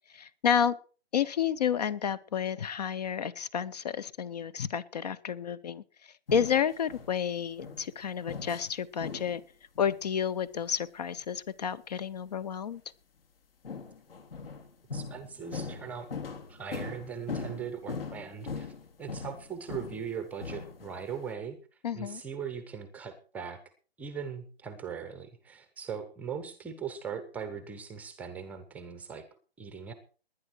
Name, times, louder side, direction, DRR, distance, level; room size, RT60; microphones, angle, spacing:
voice 1, 0.1-0.8 1.1-9.4 9.8-12.8 21.8-22.2, left 8 dB, 40° left, 21 dB, 0.8 m, -30 dB
sound 1, 6.3-7.1 7.6-7.9 8.3-8.7 9.0-9.4 9.8-10.0 13.6-20.1 20.4-21.2, left 5 dB, 65° left, 3.1 m, -40 dB
voice 2, 14.9-16.1 16.5-18.7 19.0-21.6 21.9-23.6 24.0-29.2 29.6-29.9, right 7 dB, 5° right, 10 dB, 0.8 m, -39 dB
19.5 x 10.0 x 4.5 m, 0.38 s
hypercardioid pair, 150°, 31 cm